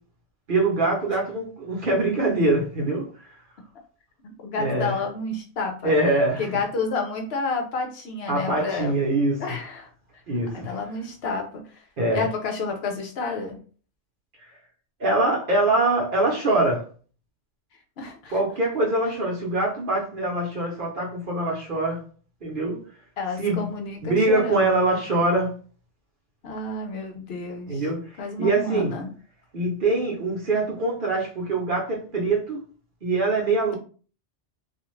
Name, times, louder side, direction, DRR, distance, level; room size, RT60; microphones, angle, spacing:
voice 1, 0.5-3.3 4.6-5.0 5.8-6.5 8.3-9.4 10.3-10.7 12.0-12.2 15.0-16.9 18.3-22.0 22.4-22.8 23.4-23.7 24.0-25.5 27.7-28.0 28.4-28.9 29.5-32.6 33.0-33.7, right 2 dB, 50° right, 0.9 m, -23 dB
voice 2, 4.2-5.9 6.4-9.0 9.4-9.9 10.5-11.9 12.1-13.6 18.0-18.4 23.2-24.7 26.4-27.9 28.2-29.1, left 3 dB, 65° left, 0.8 m, -30 dB
2.4 x 2.3 x 3.1 m
omnidirectional pair, 1.2 m